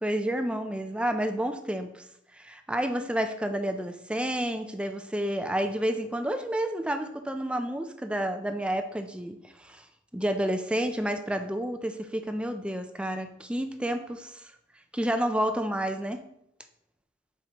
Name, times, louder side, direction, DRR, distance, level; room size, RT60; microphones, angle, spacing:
voice 1, 0.0-2.0 2.4-9.8 10.1-14.4 14.9-16.2, right 1 dB, 5° right, 8 dB, 0.4 m, -30 dB
7.3 x 4.6 x 2.9 m, 0.76 s
head